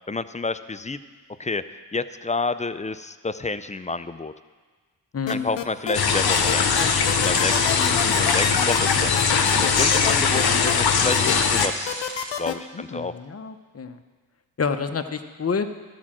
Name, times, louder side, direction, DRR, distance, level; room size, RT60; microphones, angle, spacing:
voice 1, 0.1-1.0 1.4-1.6 1.9-4.3 5.3-9.3 9.6-12.0 12.4-13.1, left 3 dB, 15° left, 12 dB, 0.4 m, -29 dB
voice 2, 5.1-5.6 12.7-14.0 14.6-15.7, left 5 dB, 35° left, 8 dB, 0.8 m, -28 dB
sound 1, 5.3-5.9 6.3-10.7 11.1-12.5, left 10 dB, 80° left, 0.7 m, -28 dB
sound 2, 5.9-11.7, left 5 dB, 60° left, 1.0 m, -21 dB
sound 3, 7.8-12.4, right 2 dB, 40° right, 1.7 m, -37 dB
12.5 x 4.9 x 7.5 m, 1.4 s
cardioid pair, 50°, 44 cm